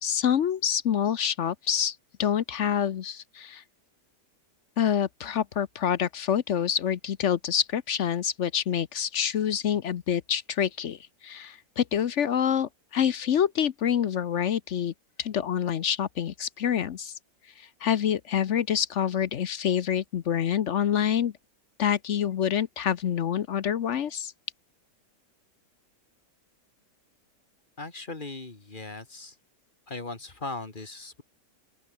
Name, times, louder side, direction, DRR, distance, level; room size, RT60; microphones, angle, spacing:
voice 1, 0.0-3.6 4.8-14.9 15.2-17.1 17.6-21.3 21.8-24.3, left 9 dB, 55° left, 0.9 m, -27 dB
voice 2, 27.8-29.4 29.9-31.2, left 3 dB, 30° left, 2.3 m, -38 dB
open air
omnidirectional pair, 1.9 m